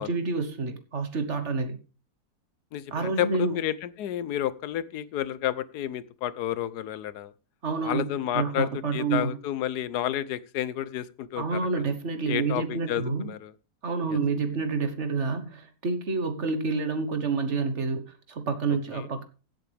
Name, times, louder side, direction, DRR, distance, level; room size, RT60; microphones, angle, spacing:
voice 1, 0.0-1.8 2.9-3.6 7.6-9.4 11.4-13.3 13.8-19.2, right 4 dB, 50° right, 8 dB, 1.5 m, -28 dB
voice 2, 2.7-7.3 7.8-11.6 12.3-13.5 14.1-14.2 18.9-19.1, left 11 dB, 90° left, 17 dB, 1.3 m, -31 dB
16.0 x 8.0 x 3.4 m, 0.35 s
omnidirectional pair, 1.6 m